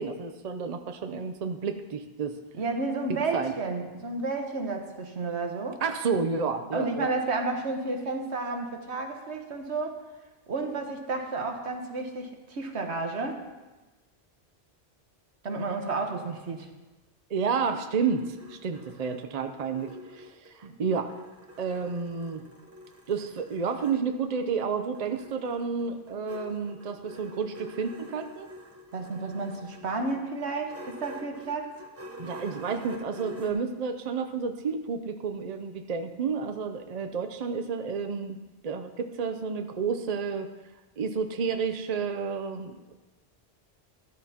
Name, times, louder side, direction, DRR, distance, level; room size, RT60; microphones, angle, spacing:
voice 1, 0.0-2.4 3.1-3.5 5.8-7.1 17.3-21.1 21.6-22.4 23.1-28.5 32.2-38.4 38.6-40.5 41.0-42.9, right 5 dB, 45° right, 7 dB, 0.6 m, -31 dB
voice 2, 2.5-5.8 6.7-10.0 10.5-13.4 15.4-16.7 28.9-31.7, right 3 dB, 80° right, 4 dB, 1.5 m, -31 dB
sound 1, 17.4-20.7 21.1-24.0 24.9-33.5, equal, 15° right, 1.0 m, -47 dB
13.5 x 11.5 x 2.9 m, 1.1 s
omnidirectional pair, 1.1 m